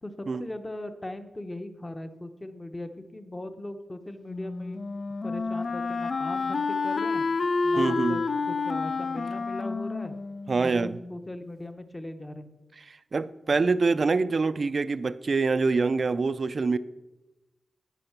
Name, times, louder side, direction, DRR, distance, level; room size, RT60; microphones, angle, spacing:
voice 1, 0.0-4.8 5.2-7.2 7.6-10.2 10.6-12.5, left 1 dB, 20° left, 8 dB, 0.9 m, -39 dB
Wind instrument woodwind instrument, 4.3-11.1, left 4 dB, 50° left, 0.6 m, -29 dB
voice 2, 7.8-8.2 10.5-11.0 13.1-16.8, right 4 dB, 45° right, 14 dB, 0.4 m, -25 dB
12.0 x 8.9 x 5.9 m, 1.0 s
wide cardioid pair, 135°, 0 cm